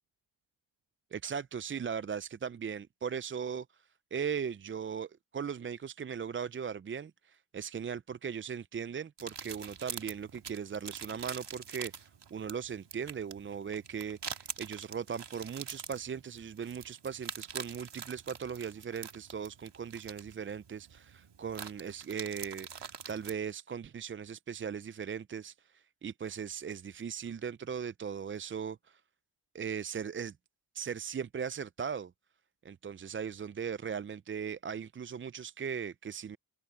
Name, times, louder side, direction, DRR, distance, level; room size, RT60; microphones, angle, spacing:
voice 1, 1.1-29.0 29.5-30.4 30.7-32.1 32.6-36.4, right 7 dB, 30° right, 0.4 m, -38 dB
sound 1, 9.2-23.4, right 7 dB, 60° right, 1.9 m, -45 dB
cardioid pair, 45°, 47 cm